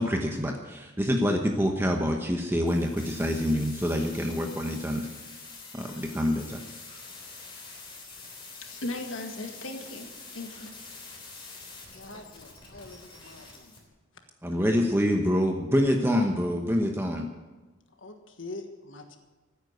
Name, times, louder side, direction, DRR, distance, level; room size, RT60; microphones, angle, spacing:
voice 1, 0.0-5.1 5.7-6.6 14.4-17.3, equal, 10° right, 2 dB, 1.0 m, -26 dB
sound 1, 2.7-13.8, left 4 dB, 25° left, 3.5 m, -46 dB
voice 2, 8.6-10.7, left 2 dB, 85° left, 3 dB, 2.1 m, -37 dB
voice 3, 11.9-13.8 17.9-19.2, left 2 dB, 70° left, 5 dB, 1.5 m, -44 dB
15.0 x 9.3 x 8.1 m, 1.2 s
head